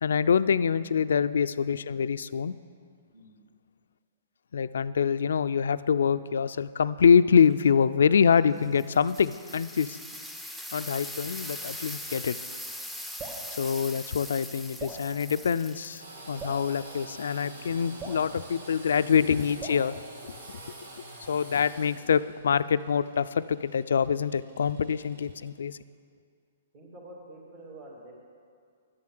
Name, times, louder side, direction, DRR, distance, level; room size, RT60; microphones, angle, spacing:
voice 1, 0.0-2.5 4.5-10.0 10.7-12.4 13.6-20.0 21.3-25.8, left 7 dB, 80° left, 14 dB, 0.3 m, -25 dB
voice 2, 3.1-3.4 26.7-28.1, right 1 dB, 45° right, -7 dB, 2.6 m, -47 dB
sound 1, 7.4-7.6 8.4-16.0 19.1-19.5, left 1 dB, 5° right, 0.6 m, -41 dB
Drip, 13.2-13.5 14.8-15.0 16.4-16.7 18.0-18.3 19.6-19.9, right 3 dB, 30° right, 1.9 m, -39 dB
Engine / Sawing, 16.0-25.5, right 1 dB, 85° right, 2.2 m, -47 dB
11.0 x 7.5 x 7.7 m, 2.2 s
hypercardioid pair, 150°, 0 cm